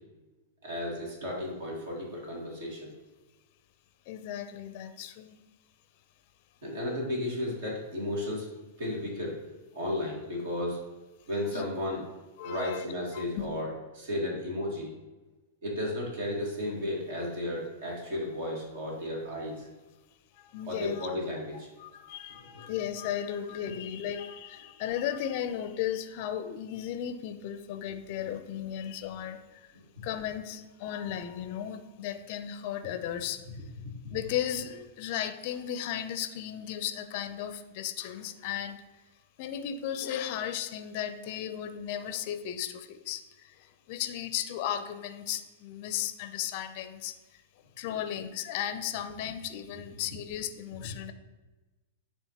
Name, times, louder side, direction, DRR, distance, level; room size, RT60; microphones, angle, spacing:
voice 1, 0.6-2.9 6.6-8.5 8.8-9.4 9.7-10.8 11.3-12.0 12.4-13.7 13.9-14.9 15.6-19.7 20.7-21.7 33.8-34.2 47.8-48.0, left 1 dB, 65° right, -2 dB, 2.0 m, -34 dB
voice 2, 4.1-5.4 11.5-11.7 12.4-12.8 13.1-13.5 20.3-21.1 21.8-29.7 30.0-33.4 34.1-38.8 39.4-47.4 47.8-51.1, left 10 dB, 50° left, 10 dB, 0.5 m, -35 dB
9.7 x 3.5 x 2.9 m, 1.2 s
hypercardioid pair, 105°, 0 cm